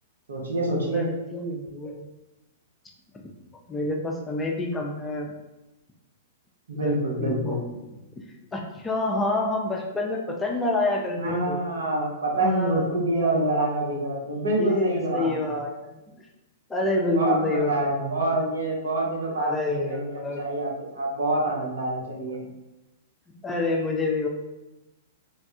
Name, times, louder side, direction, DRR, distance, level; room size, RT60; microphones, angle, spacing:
voice 1, 0.3-1.0 6.7-7.6 11.1-15.5 17.1-20.0 20.4-22.4, right 1 dB, 80° right, -2 dB, 0.9 m, -26 dB
voice 2, 0.8-2.1 3.7-5.3 6.7-7.6 8.5-11.6 12.3-13.6 14.3-16.0 16.7-18.4 19.4-20.5 22.3-22.4 23.4-24.3, left 2 dB, 15° left, 0 dB, 0.5 m, -28 dB
3.4 x 2.2 x 2.7 m, 0.99 s
hypercardioid pair, 120°, 0 cm